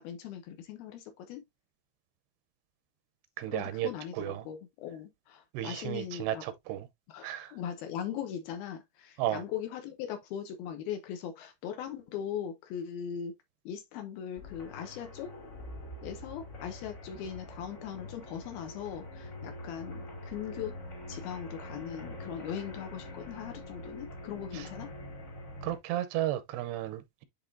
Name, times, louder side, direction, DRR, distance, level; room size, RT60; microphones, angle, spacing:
voice 1, 0.0-1.4 3.5-6.4 7.1-13.4 13.7-15.3 16.0-20.8 21.1-24.9, left 9 dB, 75° left, 2.6 m, -40 dB
voice 2, 3.4-4.5 5.5-6.9 7.2-7.5 9.2-9.4 24.5-24.7 25.6-27.2, right 13 dB, 85° right, 2.8 m, -34 dB
sound 1, 14.4-25.8, left 1 dB, 30° left, 1.4 m, -44 dB
10.0 x 3.6 x 2.6 m
omnidirectional pair, 4.8 m